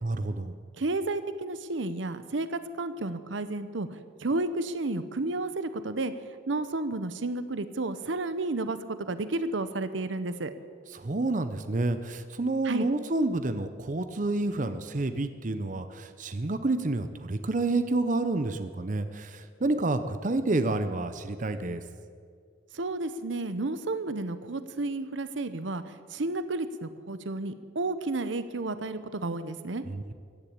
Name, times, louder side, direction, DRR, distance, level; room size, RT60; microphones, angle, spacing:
voice 1, 0.0-0.5 10.9-21.8 29.8-30.1, right 2 dB, 45° right, 10 dB, 0.7 m, -29 dB
voice 2, 0.8-3.9 4.2-6.1 6.5-10.5 12.6-12.9 22.7-25.8 26.1-29.8, right 2 dB, 80° right, 12 dB, 0.9 m, -31 dB
15.0 x 10.5 x 8.6 m, 2.1 s
head